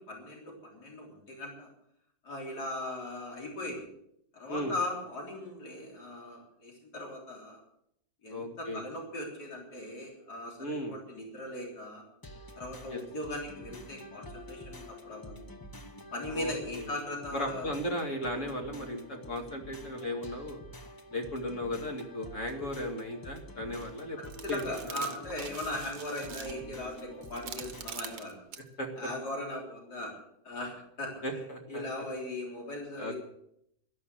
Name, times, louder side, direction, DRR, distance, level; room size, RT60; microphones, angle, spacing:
voice 1, 0.1-1.7 2.2-3.9 4.3-7.6 8.2-12.0 12.6-15.4 16.1-17.7 24.4-28.4 29.0-30.1 30.4-31.1 31.7-33.2, left 1 dB, 75° left, -1 dB, 4.2 m, -39 dB
voice 2, 8.3-8.8 10.6-11.0 12.9-13.0 16.3-16.9 17.3-20.6 21.1-24.2 24.5-25.1 28.8-28.9 31.2-31.8 33.0-33.1, left 1 dB, 50° left, 3 dB, 2.6 m, -36 dB
sound 1, 12.2-28.2, left 1 dB, 20° left, 0.7 m, -48 dB
sound 2, 23.8-23.9 24.3-28.7, right 9 dB, 80° right, 1.5 m, -44 dB
12.5 x 11.5 x 7.8 m, 0.75 s
omnidirectional pair, 1.7 m